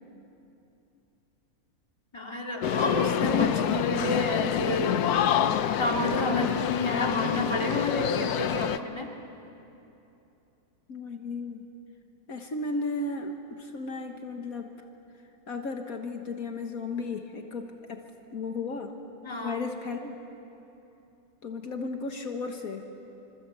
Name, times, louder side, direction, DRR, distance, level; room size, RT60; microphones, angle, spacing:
voice 1, 2.1-5.0 5.6-9.1 19.2-19.6, left 2 dB, 15° left, 0 dB, 2.6 m, -30 dB
sound 1, 2.6-8.8, left 9 dB, 85° left, 1.3 m, -27 dB
voice 2, 10.9-11.7 12.3-14.7 15.5-18.1 18.3-19.0 19.4-20.2 21.4-22.9, left 3 dB, 65° left, 4 dB, 1.9 m, -34 dB
28.0 x 25.5 x 8.2 m, 2.9 s
omnidirectional pair, 1.6 m